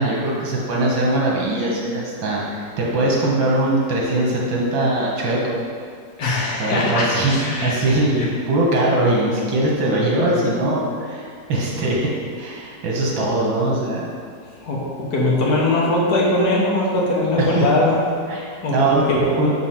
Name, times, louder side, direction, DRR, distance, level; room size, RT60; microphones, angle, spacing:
voice 1, 0.0-5.6 6.6-7.4 7.6-12.1 12.4-14.1 17.4-17.7 18.3-18.4 18.7-19.1 19.4-19.5, right 1 dB, 85° right, -3 dB, 1.9 m, -21 dB
voice 2, 6.2-7.8 8.2-8.3 14.6-17.9 18.6-19.3, left 2 dB, 60° left, -5 dB, 1.5 m, -20 dB
4.8 x 4.0 x 5.7 m, 2.2 s
omnidirectional pair, 2.0 m